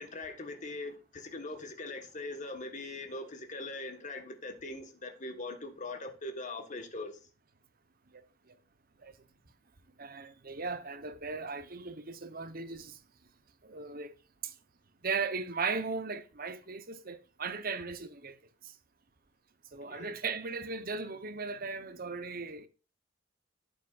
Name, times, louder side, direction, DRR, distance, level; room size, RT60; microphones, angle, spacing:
voice 1, 0.0-7.2 19.9-20.1, left 2 dB, 40° left, 1.5 m, -41 dB
voice 2, 10.0-13.0 13.6-14.1 14.4-14.5 15.0-18.4 19.7-22.7, right 4 dB, 45° right, 1.0 m, -37 dB
12.0 x 8.5 x 2.5 m
head